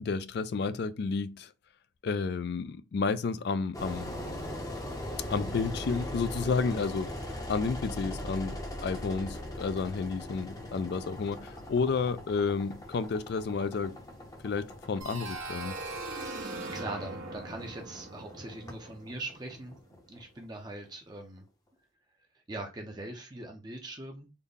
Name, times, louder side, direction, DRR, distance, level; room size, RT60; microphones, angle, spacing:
voice 1, 0.0-1.5 2.0-4.1 5.3-7.1 7.5-14.0 14.4-15.7, left 4 dB, 55° left, 0.3 m, -31 dB
Engine, 3.7-20.6, left 1 dB, 20° left, 0.6 m, -40 dB
sound 1, 15.0-19.7, right 2 dB, 75° right, 1.0 m, -40 dB
voice 2, 16.1-19.8 20.1-21.5 22.5-24.3, right 2 dB, 20° right, 0.5 m, -42 dB
3.9 x 2.1 x 3.4 m
head